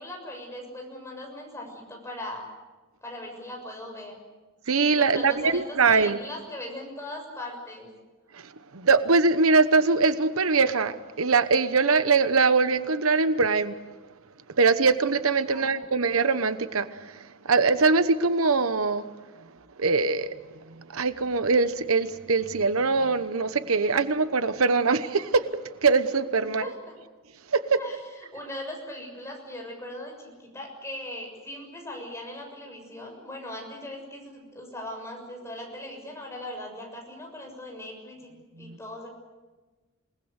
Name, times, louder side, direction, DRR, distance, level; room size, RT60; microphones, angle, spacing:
voice 1, 0.0-2.5 3.0-4.2 4.9-7.9 15.5-16.2 26.4-27.0 27.8-38.3 38.6-39.1, left 1 dB, 15° left, 6.7 m, -39 dB
voice 2, 4.7-6.2 8.7-13.7 14.6-16.9 17.4-19.1 19.8-20.3 20.9-25.5 25.8-26.7 27.5-27.8 38.6-38.8, right 4 dB, 85° right, 1.0 m, -22 dB
27.5 x 19.5 x 8.2 m
head